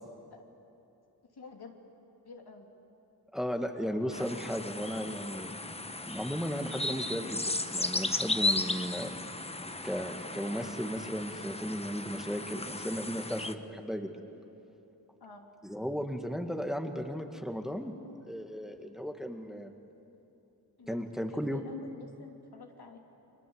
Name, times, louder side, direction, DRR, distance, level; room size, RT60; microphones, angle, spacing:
voice 1, 1.3-1.7 2.2-2.7 15.2-15.5 20.8-21.0 21.3-23.0, left 3 dB, 80° left, 1 dB, 3.1 m, -49 dB
voice 2, 3.3-5.6 6.0-9.1 9.8-14.2 15.6-17.9 18.2-19.7 20.9-21.6, equal, ahead, 4 dB, 1.9 m, -35 dB
sound 1, 4.1-13.5, left 2 dB, 15° left, 0.9 m, -35 dB
30.0 x 23.5 x 8.0 m, 2.8 s
wide cardioid pair, 85°, 38 cm